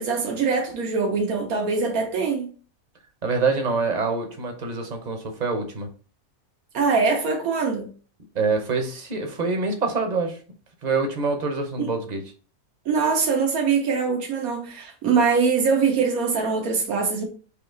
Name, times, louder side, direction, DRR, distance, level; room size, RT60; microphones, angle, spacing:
voice 1, 0.0-2.5 6.7-7.9 12.9-17.2, right 5 dB, 85° right, 1.4 m, -23 dB
voice 2, 3.2-5.9 8.3-10.4 10.8-12.2, right 4 dB, 35° right, 0.8 m, -25 dB
4.8 x 2.9 x 3.8 m
omnidirectional pair, 1.5 m